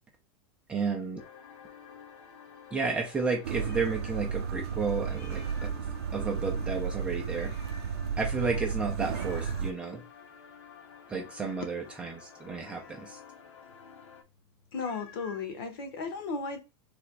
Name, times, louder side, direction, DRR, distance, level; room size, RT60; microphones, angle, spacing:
voice 1, 0.7-1.2 2.7-5.7 6.1-7.5 8.2-10.0 11.1-13.2, right 4 dB, 10° right, 0.6 m, -32 dB
sound 1, 1.2-14.2, left 7 dB, 90° left, 1.1 m, -52 dB
Meow, 2.7-4.2 4.5-4.6 5.0-5.9 7.3-7.9 8.4-8.8 9.1-9.7 12.6-13.2 14.8-15.5, left 4 dB, 40° left, 0.8 m, -52 dB
sound 2, 3.4-9.7, right 6 dB, 70° right, 0.5 m, -33 dB
voice 2, 14.7-16.6, left 4 dB, 60° left, 1.2 m, -35 dB
3.4 x 3.1 x 4.5 m
supercardioid pair, 175°, 14 cm